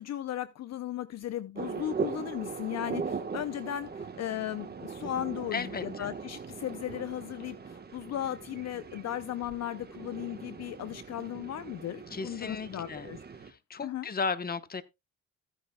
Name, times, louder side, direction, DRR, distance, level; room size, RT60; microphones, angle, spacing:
voice 1, 0.0-13.2 13.8-14.1, left 11 dB, 60° left, 0.7 m, -36 dB
sound 1, 1.5-13.5, right 5 dB, 30° right, 1.4 m, -40 dB
voice 2, 5.5-6.1 12.1-13.1 13.4-14.8, left 5 dB, 30° left, 1.1 m, -35 dB
15.0 x 9.6 x 2.3 m
cardioid pair, 90°, 30 cm